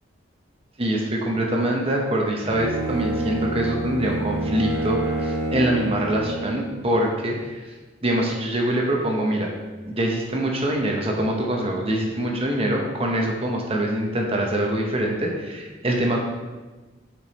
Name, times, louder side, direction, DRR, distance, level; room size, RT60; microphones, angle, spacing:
voice 1, 0.8-7.6 8.0-9.5 9.9-16.2, right 1 dB, 30° right, 0 dB, 0.8 m, -24 dB
Bowed string instrument, 2.4-6.6, right 1 dB, 65° right, 1.4 m, -27 dB
6.0 x 5.0 x 4.1 m, 1.2 s
head